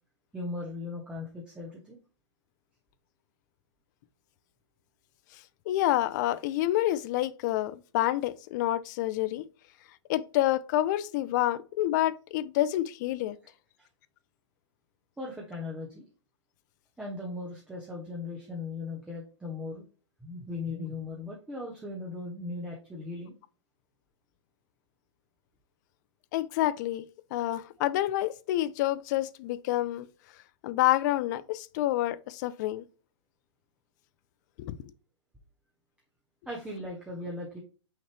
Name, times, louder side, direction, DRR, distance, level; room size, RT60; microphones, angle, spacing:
voice 1, 0.3-2.0 13.8-13.9 15.2-16.0 17.0-19.8 20.2-23.3 36.5-37.6, left 2 dB, 5° right, 0.8 m, -38 dB
voice 2, 5.7-9.5 10.1-13.4 26.3-27.0 27.3-30.1 30.6-32.8 34.6-34.7, left 14 dB, 40° left, 0.3 m, -28 dB
5.6 x 2.9 x 3.2 m
hypercardioid pair, 120°, 15 cm